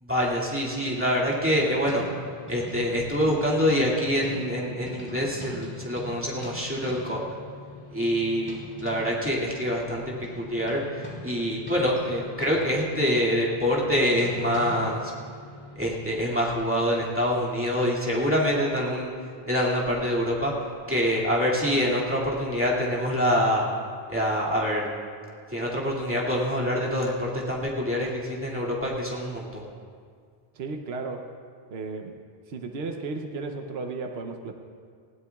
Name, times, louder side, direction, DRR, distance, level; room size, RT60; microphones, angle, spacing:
voice 1, 0.0-2.0 2.5-7.2 7.9-8.5 8.8-15.1 15.8-19.1 19.5-20.5 20.9-23.7 24.1-24.9 25.5-29.6, equal, 10° right, -6 dB, 2.3 m, -25 dB
sound 1, 1.3-16.0, left 1 dB, 10° left, 3.3 m, -43 dB
voice 2, 30.5-31.3 31.7-32.1 32.5-34.5, right 3 dB, 80° right, 4 dB, 1.0 m, -34 dB
20.5 x 16.0 x 2.3 m, 2.1 s
omnidirectional pair, 1.0 m